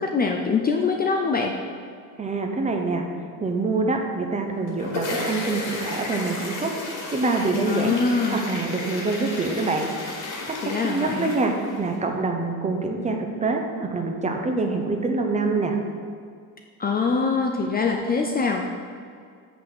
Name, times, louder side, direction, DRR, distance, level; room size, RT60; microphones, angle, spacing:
voice 1, 0.0-1.5 7.7-8.4 10.6-11.3 16.8-18.7, left 4 dB, 25° left, 2 dB, 0.4 m, -23 dB
voice 2, 2.2-3.1 3.4-6.7 7.1-7.9 8.3-9.9 10.5-15.8, right 3 dB, 20° right, 3 dB, 0.7 m, -25 dB
sound 1, 4.5-11.9, left 2 dB, 50° left, 2.0 m, -33 dB
6.9 x 6.1 x 6.0 m, 2.2 s
cardioid pair, 145°, 38 cm